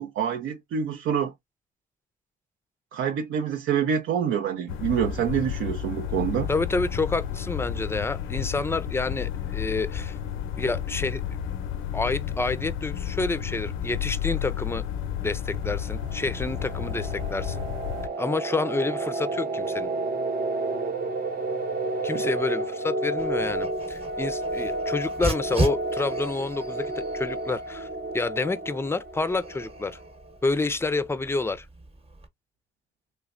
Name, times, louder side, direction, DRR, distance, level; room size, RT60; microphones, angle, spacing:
voice 1, 0.0-1.3 2.9-6.5, right 8 dB, 80° right, 0.6 m, -26 dB
sound 1, 4.7-18.1, left 9 dB, 85° left, 0.5 m, -32 dB
voice 2, 6.5-10.2 10.6-11.2 11.9-14.8 15.2-17.6 18.2-19.9 22.0-27.9 28.1-30.0 30.4-31.7, left 3 dB, 10° left, 0.4 m, -28 dB
sound 2, 15.6-30.2, right 2 dB, 50° right, 0.8 m, -31 dB
Dog, 23.2-32.3, right 2 dB, 30° right, 1.0 m, -36 dB
3.2 x 3.1 x 2.4 m
cardioid pair, 90°, 20 cm